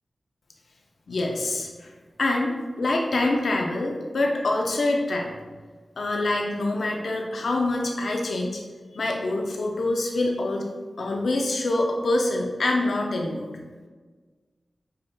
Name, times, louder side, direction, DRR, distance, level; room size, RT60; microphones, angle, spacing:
voice 1, 1.1-1.9 2.2-5.3 6.0-8.6 8.9-10.7 11.0-13.5, left 2 dB, 75° left, 0 dB, 0.4 m, -25 dB
4.9 x 2.6 x 2.2 m, 1.4 s
cardioid pair, 45°, 0 cm